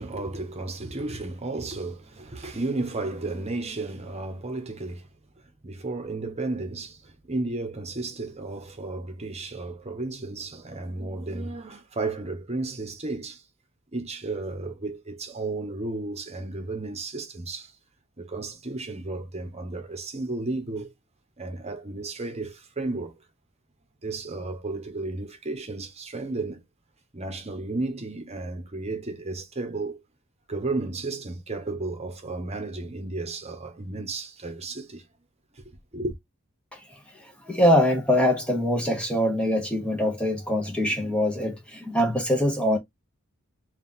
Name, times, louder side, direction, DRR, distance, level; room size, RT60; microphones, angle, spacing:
voice 1, 0.0-5.1 5.6-13.4 13.9-17.7 18.2-20.9 21.4-23.1 24.0-26.6 27.1-30.0 30.5-35.0 35.5-35.6 35.9-36.1, right 2 dB, 30° right, 0.9 m, -33 dB
voice 2, 36.7-42.8, left 1 dB, 5° left, 0.8 m, -24 dB
4.3 x 2.4 x 3.6 m
head